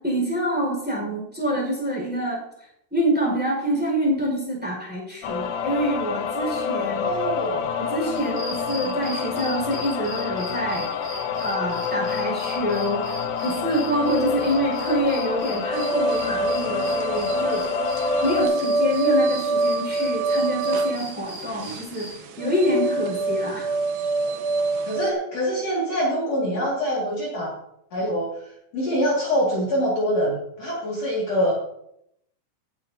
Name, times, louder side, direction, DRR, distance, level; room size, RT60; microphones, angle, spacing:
voice 1, 0.0-2.4 2.9-7.1 7.8-11.0 11.4-13.2 13.4-17.7 18.2-22.1 22.4-23.7, equal, 5° right, -2 dB, 4.7 m, -26 dB
sound 1, 5.2-18.5, left 6 dB, 75° left, 2.0 m, -28 dB
voice 2, 7.0-7.7 8.5-8.8 14.4-14.5 24.9-27.5 27.9-28.3 28.7-31.6, equal, 50° left, -5 dB, 3.2 m, -25 dB
sound 2, 8.1-22.1, left 1 dB, 55° right, 5.7 m, -40 dB
sound 3, 15.7-25.1, right 3 dB, 80° right, 2.6 m, -25 dB
17.5 x 8.9 x 2.8 m, 0.76 s
omnidirectional pair, 4.0 m